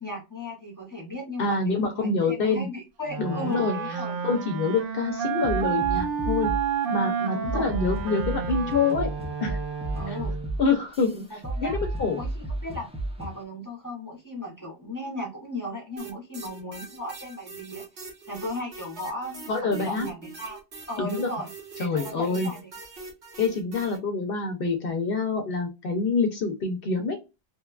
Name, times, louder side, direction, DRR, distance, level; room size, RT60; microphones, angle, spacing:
voice 1, 0.0-4.2 7.3-7.7 10.0-10.3 11.3-11.8 12.1-12.9 13.2-17.8 18.3-20.6 20.9-21.5 21.8-22.6, left 1 dB, 20° left, -1 dB, 0.7 m, -36 dB
voice 2, 1.4-2.7 3.2-4.0 4.2-6.5 6.9-9.1 9.4-9.6 10.6-11.3 11.6-12.2 19.5-20.1 21.0-21.3 21.8-22.5 23.4-27.2, left 4 dB, 65° left, 4 dB, 0.8 m, -26 dB
Wind instrument woodwind instrument, 3.1-10.6, right 7 dB, 60° right, 0.7 m, -30 dB
sound 1, 5.4-6.7 7.4-13.4, right 1 dB, 10° right, 0.3 m, -33 dB
sound 2, 16.0-24.0, right 4 dB, 80° right, 1.2 m, -43 dB
3.0 x 2.2 x 2.3 m, 0.26 s
omnidirectional pair, 1.1 m